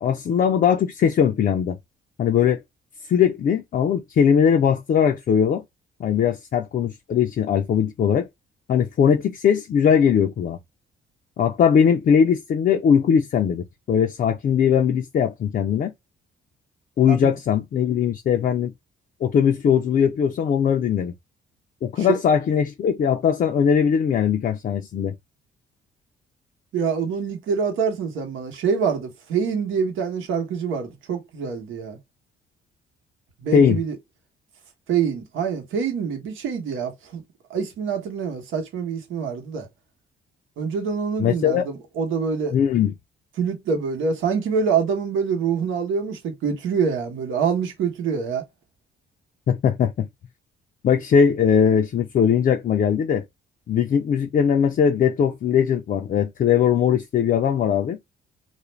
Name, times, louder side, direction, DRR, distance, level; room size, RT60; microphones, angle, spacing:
voice 1, 0.0-1.8 2.2-2.6 3.1-5.6 6.0-8.3 8.7-10.6 11.4-15.9 17.0-18.7 19.2-21.1 21.8-25.1 33.5-33.8 41.2-41.6 42.5-42.9 49.5-50.1 50.8-53.2 53.7-58.0, left 7 dB, 45° left, 0.4 m, -20 dB
voice 2, 26.7-32.0 33.4-34.0 34.9-37.2 37.5-39.7 40.6-42.6 43.4-48.4, right 6 dB, 80° right, 0.9 m, -25 dB
2.5 x 2.1 x 3.1 m
cardioid pair, 90°, 20 cm